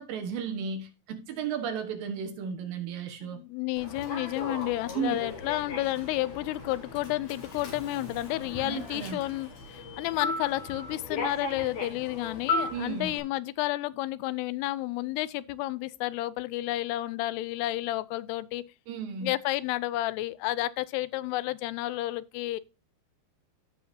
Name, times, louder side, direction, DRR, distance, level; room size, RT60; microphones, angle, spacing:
voice 1, 0.0-3.4 4.9-5.2 8.6-9.2 12.7-13.1 18.9-19.3, right 6 dB, 65° right, 2.8 m, -34 dB
voice 2, 3.2-18.6 19.2-22.6, left 17 dB, 90° left, 2.6 m, -31 dB
Human voice / Subway metro underground, 3.8-13.2, left 3 dB, 50° left, 3.0 m, -36 dB
15.5 x 5.7 x 2.7 m
omnidirectional pair, 4.6 m